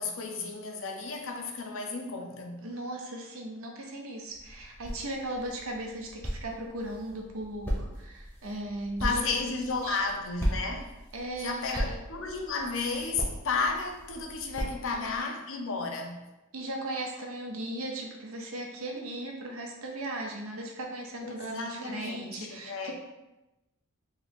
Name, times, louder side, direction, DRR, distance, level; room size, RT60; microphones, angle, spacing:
voice 1, 0.0-2.7 9.0-10.9 11.4-16.3 21.2-22.9, left 4 dB, 60° left, 0.5 m, -33 dB
voice 2, 2.6-9.2 9.8-10.0 11.1-12.0 14.9-15.1 16.5-22.9, right 1 dB, 65° right, 0.7 m, -37 dB
sound 1, 4.3-15.2, equal, 5° left, 0.8 m, -37 dB
3.1 x 2.9 x 4.0 m
head